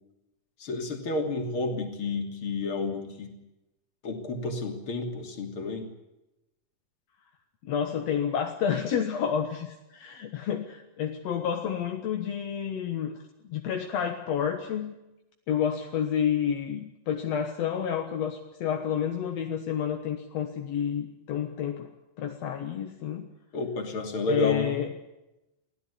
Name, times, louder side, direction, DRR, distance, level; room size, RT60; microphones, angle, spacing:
voice 1, 0.6-3.3 4.0-5.9 23.5-24.8, left 2 dB, 35° left, 4 dB, 3.6 m, -31 dB
voice 2, 7.6-13.2 13.5-15.0 15.5-21.9 22.2-23.3 24.3-24.9, left 8 dB, 55° left, 4 dB, 2.0 m, -29 dB
23.5 x 16.5 x 8.4 m, 0.94 s
omnidirectional pair, 4.4 m